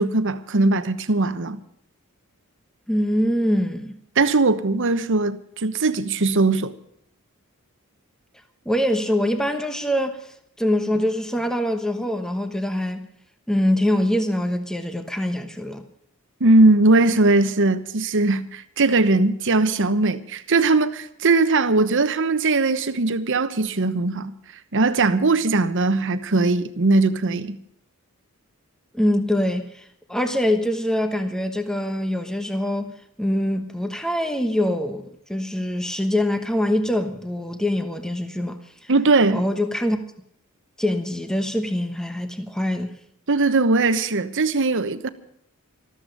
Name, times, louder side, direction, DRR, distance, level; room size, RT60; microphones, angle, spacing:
voice 1, 0.0-1.6 4.2-6.7 16.4-24.3 24.7-27.6 38.9-39.4 43.3-45.1, right 3 dB, 60° right, 1.1 m, -20 dB
voice 2, 2.9-4.0 8.6-13.1 13.5-15.8 28.9-32.9 33.2-35.0 35.3-38.9 39.3-40.0 40.8-42.9, left 1 dB, 5° left, 1.1 m, -24 dB
13.5 x 13.5 x 6.6 m
head